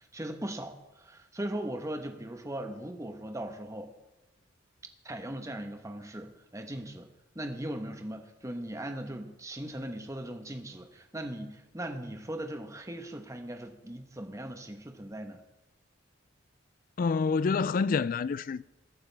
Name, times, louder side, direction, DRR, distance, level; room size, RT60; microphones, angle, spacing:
voice 1, 0.0-3.9 5.0-7.1 7.3-15.4, right 1 dB, 15° right, 1.1 m, -39 dB
voice 2, 17.0-18.7, left 5 dB, 45° left, 0.3 m, -27 dB
21.5 x 8.8 x 3.4 m
head